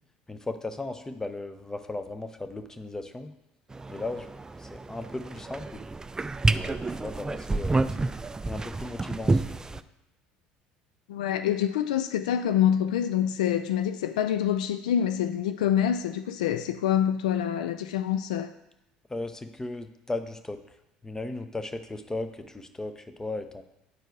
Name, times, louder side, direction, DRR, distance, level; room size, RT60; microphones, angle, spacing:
voice 1, 0.3-3.3 3.9-4.3 4.6-5.8 6.5-8.1 8.4-9.8 19.1-20.6 21.0-23.6, left 2 dB, 15° left, 0.8 m, -36 dB
sound 1, 3.7-9.8, right 3 dB, 15° right, 0.4 m, -29 dB
voice 2, 11.1-18.5, left 10 dB, 80° left, 0.4 m, -26 dB
9.4 x 4.6 x 4.6 m
hypercardioid pair, 65°, 4 cm